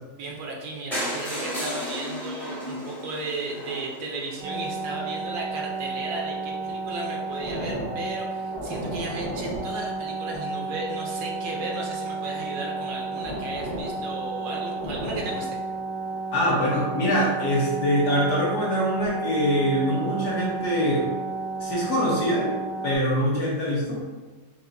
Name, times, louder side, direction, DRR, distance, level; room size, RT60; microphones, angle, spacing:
voice 1, 0.2-15.5, right 2 dB, 75° right, -1 dB, 1.2 m, -35 dB
sound 1, 0.9-4.8 5.4-5.5 5.8-5.9 6.2-6.3 6.4-6.5, equal, ahead, 0.4 m, -34 dB
sound 2, 4.4-23.0, right 3 dB, 55° right, 0.5 m, -32 dB
voice 2, 16.3-21.1 21.6-22.5 22.8-24.0, equal, 60° left, -5 dB, 1.1 m, -24 dB
4.5 x 2.0 x 3.8 m, 1.3 s
omnidirectional pair, 2.2 m